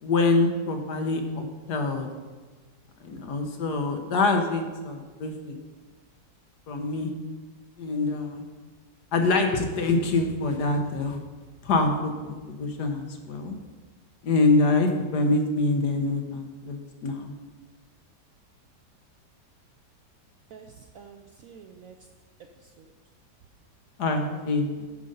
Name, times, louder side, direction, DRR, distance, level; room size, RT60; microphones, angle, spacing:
voice 1, 0.0-2.1 3.0-5.6 6.7-7.1 7.8-8.4 9.1-11.2 11.6-13.6 14.2-17.3 24.0-24.9, left 3 dB, 65° left, 5 dB, 1.5 m, -25 dB
voice 2, 20.5-22.0 22.6-23.0 24.1-24.4, right 6 dB, 70° right, 5 dB, 0.8 m, -48 dB
10.0 x 5.1 x 5.4 m, 1.4 s
omnidirectional pair, 1.9 m